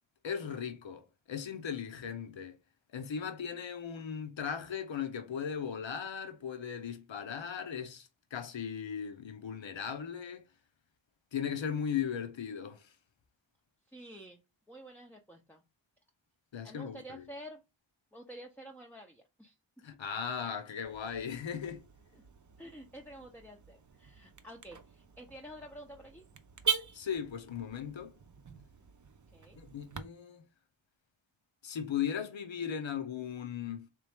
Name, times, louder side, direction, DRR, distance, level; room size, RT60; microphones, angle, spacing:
voice 1, 0.2-2.6 2.9-10.5 11.3-12.9 16.5-17.2 19.8-21.8 26.9-28.1 29.6-30.4 31.6-33.9, left 7 dB, 70° left, 0.8 m, -37 dB
voice 2, 13.9-14.4 14.7-15.6 16.6-17.6 18.1-19.6 22.1-22.2 22.6-26.3 29.3-29.6, right 1 dB, 5° left, 0.7 m, -49 dB
Car / Alarm, 20.8-30.0, right 6 dB, 40° right, 0.6 m, -42 dB
3.7 x 3.1 x 3.5 m
cardioid pair, 50°, 46 cm